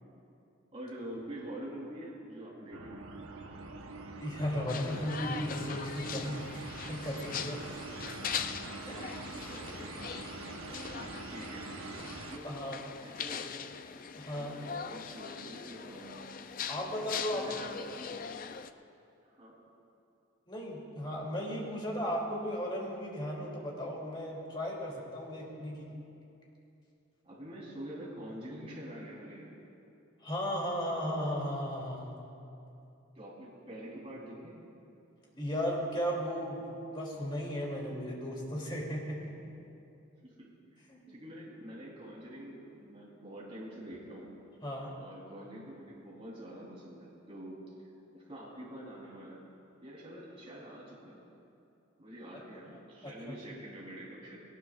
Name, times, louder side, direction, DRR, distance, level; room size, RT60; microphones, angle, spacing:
voice 1, 0.7-3.0 9.4-10.2 10.9-12.0 12.3-12.6 13.0-13.8 14.3-16.7 17.1-18.2 19.2-19.6 27.2-29.6 33.1-34.6 40.2-40.5 41.1-44.3 44.9-47.6 48.1-49.4 49.8-51.2 52.0-54.4, right 1 dB, 30° right, -6 dB, 3.7 m, -46 dB
sound 1, 2.7-12.4, right 3 dB, 90° right, 1.0 m, -44 dB
voice 2, 4.2-6.5 6.9-7.7 8.8-9.0 12.4-12.8 14.1-14.6 16.7-17.8 20.5-25.9 30.2-32.1 35.3-36.7 36.9-39.2 40.9-41.1 44.6-44.9 53.3-53.4, equal, 25° left, -3 dB, 2.7 m, -35 dB
sound 2, 4.7-18.7, left 7 dB, 40° left, 0.4 m, -41 dB
20.5 x 19.0 x 2.4 m, 2.7 s
head